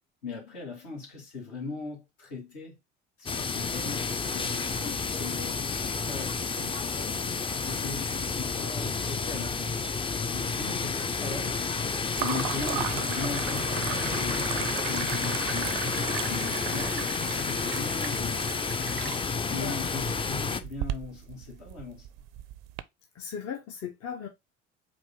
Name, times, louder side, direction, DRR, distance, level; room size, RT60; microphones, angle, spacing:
voice 1, 0.2-2.8 3.2-7.2 7.7-9.8 10.3-11.6 12.2-15.8 16.3-18.4 19.5-22.1, left 4 dB, 70° left, 2.0 m, -39 dB
sound 1, 3.3-20.6, left 4 dB, 15° left, 0.4 m, -30 dB
sound 2, 9.0-9.7 10.0-10.7 12.1-22.8, right 14 dB, 65° right, 0.5 m, -37 dB
voice 2, 23.1-24.3, left 7 dB, 45° left, 0.8 m, -37 dB
4.9 x 2.5 x 3.6 m
figure-of-eight pair, 55°, 34 cm